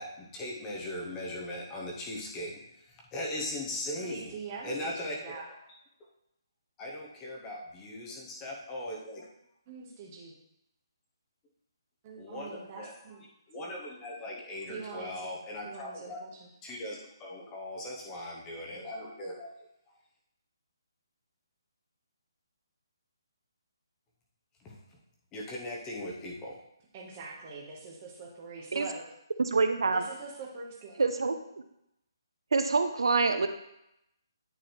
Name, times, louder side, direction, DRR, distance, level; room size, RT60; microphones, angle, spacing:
voice 1, 0.0-2.6 2.9-4.3 4.6-5.4 6.8-9.3 12.2-12.9 13.5-16.2 16.6-19.5 24.6-24.8 25.3-26.6, left 1 dB, 10° left, -2 dB, 0.7 m, -39 dB
voice 2, 4.0-5.5 9.7-10.3 12.0-13.3 14.7-15.3 15.6-16.5 26.9-29.1 29.9-31.1, right 4 dB, 20° right, -2 dB, 1.0 m, -44 dB
voice 3, 29.4-30.0 31.0-31.3 32.5-33.5, right 4 dB, 80° right, 8 dB, 0.6 m, -25 dB
9.1 x 3.2 x 4.3 m, 0.81 s
hypercardioid pair, 175°, 2 cm